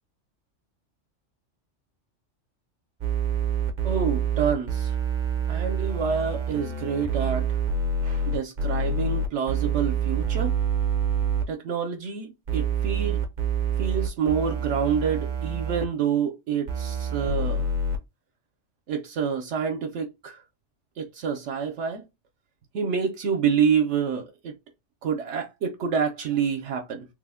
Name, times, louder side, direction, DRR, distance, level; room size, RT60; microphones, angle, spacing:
sound 1, 3.0-11.4 12.5-15.9 16.7-18.0, right 5 dB, 50° right, 0.7 m, -27 dB
voice 1, 3.8-4.9 5.5-7.5 8.0-10.6 11.5-13.2 13.8-17.7 18.9-20.4 21.0-22.0 22.7-24.5 25.0-27.1, right 6 dB, 75° right, 0.9 m, -27 dB
3.2 x 2.0 x 3.5 m
omnidirectional pair, 1.2 m